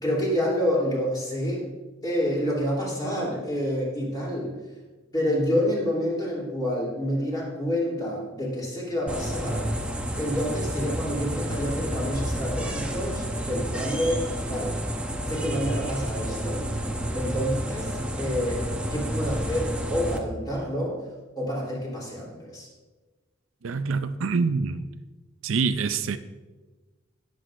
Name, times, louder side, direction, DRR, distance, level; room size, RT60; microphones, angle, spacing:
voice 1, 0.0-1.6 2.0-4.6 5.1-9.7 10.2-14.8 15.2-16.7 17.1-21.0 21.4-22.7, equal, 20° left, -4 dB, 3.3 m, -28 dB
sound 1, 9.1-20.2, right 1 dB, 5° right, 0.8 m, -30 dB
voice 2, 23.6-24.9 25.4-26.2, right 4 dB, 75° right, 10 dB, 0.5 m, -25 dB
18.0 x 7.7 x 2.5 m, 1.3 s
head